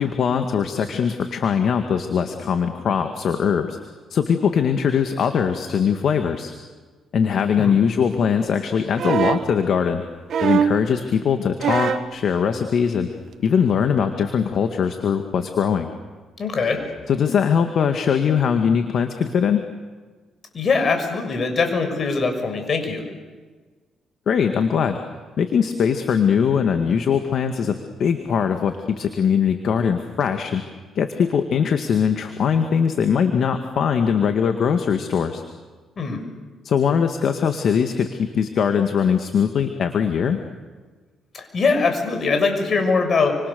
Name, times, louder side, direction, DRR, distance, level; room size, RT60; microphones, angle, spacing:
voice 1, 0.0-3.8 4.1-6.5 7.1-10.0 10.4-13.1 13.4-15.9 17.1-19.6 24.3-25.0 25.4-30.6 31.0-35.4 36.6-40.4, left 7 dB, 60° left, 6 dB, 1.9 m, -21 dB
sound 1, 9.0-9.5 10.3-10.8 11.6-12.1 13.3-13.4, right 7 dB, 65° right, 1.4 m, -21 dB
voice 2, 16.4-16.8 20.5-23.0 36.0-36.2 41.3-43.4, left 4 dB, 45° left, 6 dB, 6.5 m, -22 dB
29.0 x 26.5 x 7.0 m, 1.4 s
cardioid pair, 90°, 0 cm